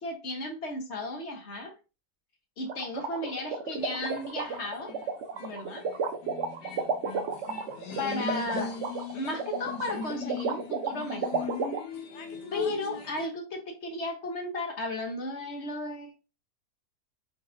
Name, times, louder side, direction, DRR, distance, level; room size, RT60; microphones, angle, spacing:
voice 1, 0.0-1.7 2.6-4.9 5.4-5.9 8.0-8.8 9.1-11.5 12.5-16.2, left 2 dB, 45° left, 3 dB, 1.2 m, -34 dB
sound 1, 2.7-11.8, right 6 dB, 60° right, 0.8 m, -32 dB
sound 2, 3.8-13.3, left 5 dB, 80° left, 1.3 m, -40 dB
4.7 x 3.7 x 2.5 m, 0.30 s
omnidirectional pair, 1.8 m